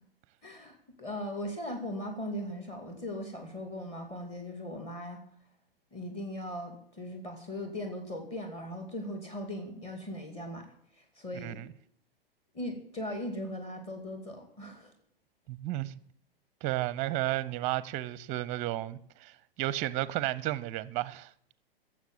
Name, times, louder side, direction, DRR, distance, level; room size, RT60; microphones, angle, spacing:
voice 1, 0.4-5.2 5.9-10.7 11.2-11.6 12.5-14.9, left 1 dB, 20° left, 2.4 m, -39 dB
voice 2, 15.5-16.0 16.6-21.3, right 15 dB, 25° right, 0.6 m, -33 dB
17.5 x 7.5 x 7.4 m
figure-of-eight pair, 110°, 29 cm